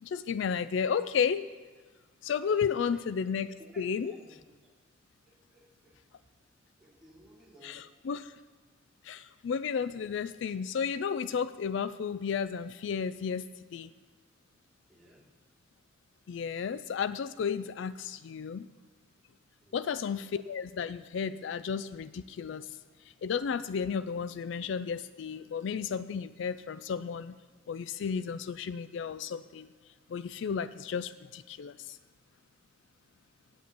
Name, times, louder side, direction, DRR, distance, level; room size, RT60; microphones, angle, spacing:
voice 1, 0.0-1.5 2.2-4.1 7.6-8.3 9.0-13.9 16.3-18.7 19.7-22.8 23.2-27.4 27.7-29.7 30.1-32.0, left 6 dB, 65° left, 14 dB, 0.3 m, -33 dB
voice 2, 2.4-3.1 3.6-4.7 5.3-6.3 6.8-7.9 9.8-10.0 14.9-15.3 19.6-19.8, equal, 5° right, -7 dB, 2.8 m, -56 dB
8.6 x 7.4 x 8.3 m, 1.4 s
head